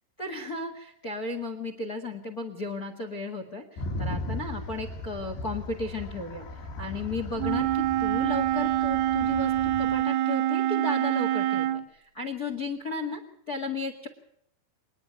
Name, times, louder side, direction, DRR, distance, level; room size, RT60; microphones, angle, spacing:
voice 1, 0.2-14.1, left 3 dB, 50° left, 8 dB, 1.0 m, -34 dB
sound 1, 3.8-10.0, left 1 dB, 80° left, 4.9 m, -37 dB
Wind instrument woodwind instrument, 7.4-11.8, right 13 dB, 70° right, 1.8 m, -26 dB
27.5 x 10.5 x 9.4 m, 0.74 s
omnidirectional pair, 4.9 m